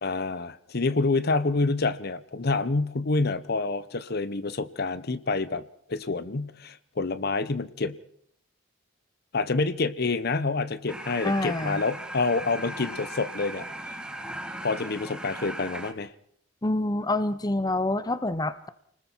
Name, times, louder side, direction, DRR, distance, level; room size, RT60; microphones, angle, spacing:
voice 1, 0.0-5.6 5.9-8.0 9.3-13.7 14.6-16.1, left 3 dB, 55° left, 15 dB, 0.8 m, -27 dB
sound 1, 10.9-15.9, right 1 dB, 5° right, 1.9 m, -38 dB
voice 2, 11.2-11.8 16.6-18.7, left 2 dB, 20° left, 14 dB, 0.8 m, -27 dB
29.0 x 20.0 x 4.5 m, 0.66 s
head